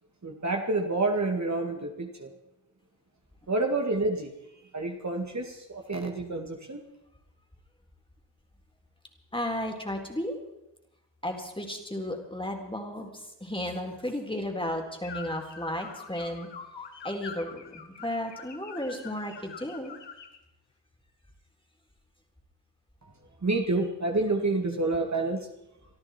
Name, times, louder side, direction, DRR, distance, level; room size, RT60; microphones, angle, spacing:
voice 1, 0.2-2.3 3.5-4.3 4.7-6.8 23.0-23.1 23.4-25.5, right 2 dB, 40° right, 2 dB, 2.2 m, -28 dB
voice 2, 9.3-10.3 11.2-16.5 17.0-20.0, left 1 dB, 10° left, 2 dB, 3.9 m, -34 dB
sound 1, 15.0-20.4, left 6 dB, 75° left, 1.7 m, -44 dB
24.0 x 13.0 x 4.5 m, 0.90 s
cardioid pair, 45°, 43 cm